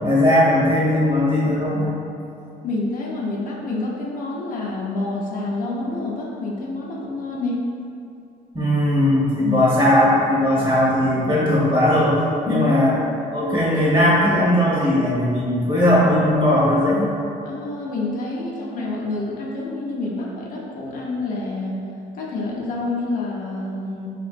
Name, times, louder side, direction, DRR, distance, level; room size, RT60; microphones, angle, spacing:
voice 1, 0.0-1.9 8.5-12.2 12.4-12.9 13.3-17.1, left 1 dB, 30° right, -8 dB, 1.4 m, -18 dB
voice 2, 2.6-7.6 9.4-9.7 12.5-12.7 17.4-21.7 22.2-24.1, left 2 dB, 55° left, -4 dB, 0.7 m, -27 dB
4.3 x 3.0 x 2.5 m, 2.6 s
cardioid pair, 110°, 17 cm